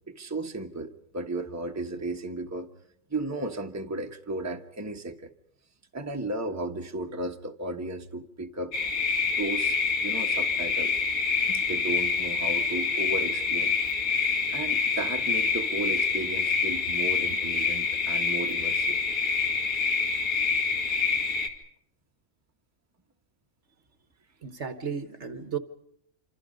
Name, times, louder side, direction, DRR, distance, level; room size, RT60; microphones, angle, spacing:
voice 1, 0.1-2.7 3.1-5.3 5.9-8.7 9.4-9.8 10.0-10.9 11.5-13.7 14.5-19.0, right 2 dB, 10° right, 3 dB, 1.3 m, -34 dB
sound 1, 8.7-21.5, left 5 dB, 80° left, 3.0 m, -26 dB
voice 2, 24.4-25.6, right 6 dB, 55° right, 9 dB, 1.5 m, -34 dB
27.0 x 26.5 x 5.3 m, 0.71 s
omnidirectional pair, 1.5 m